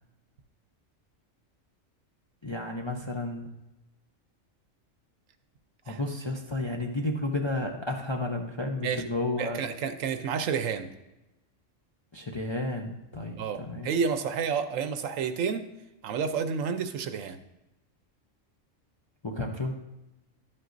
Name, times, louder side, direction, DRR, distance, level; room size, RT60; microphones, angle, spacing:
voice 1, 2.4-3.5 5.9-9.6 12.1-13.9 19.2-19.8, left 2 dB, 35° left, 1 dB, 0.4 m, -32 dB
voice 2, 9.4-10.9 13.4-15.7 16.0-17.4, right 6 dB, 80° right, 9 dB, 1.1 m, -30 dB
11.5 x 7.8 x 2.6 m, 0.97 s
omnidirectional pair, 1.3 m